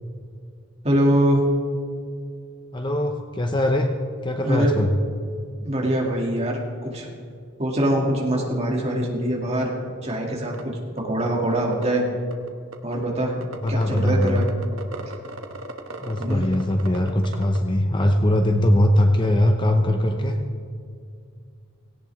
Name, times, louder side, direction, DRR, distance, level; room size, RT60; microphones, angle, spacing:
voice 1, 0.8-1.4 4.4-4.8 5.6-7.1 7.6-9.7 10.0-12.0 12.8-13.3 13.7-14.5 15.0-15.2 16.2-16.5, right 1 dB, 30° right, -1 dB, 2.4 m, -23 dB
voice 2, 2.7-3.9 4.2-4.9 13.6-14.4 16.0-20.4, left 1 dB, 20° left, 5 dB, 0.7 m, -21 dB
sound 1, 10.1-10.2 10.5-10.6 11.0-11.1 11.3-11.9 12.3-12.9 13.4-17.6, right 2 dB, 80° right, 1.3 m, -36 dB
17.5 x 17.0 x 3.5 m, 2.3 s
head